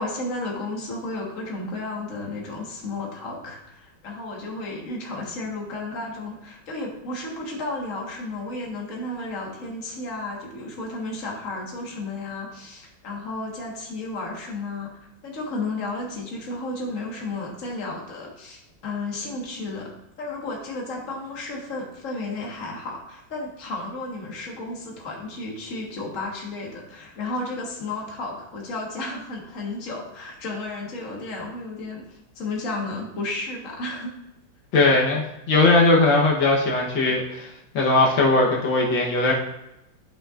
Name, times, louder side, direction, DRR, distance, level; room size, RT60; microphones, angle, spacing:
voice 1, 0.0-14.9 15.2-19.9 20.2-34.1, left 2 dB, 45° left, -2 dB, 1.8 m, -33 dB
voice 2, 34.7-37.5 37.7-39.3, left 2 dB, 80° left, -2 dB, 1.9 m, -19 dB
12.5 x 5.6 x 2.5 m, 0.88 s
omnidirectional pair, 2.0 m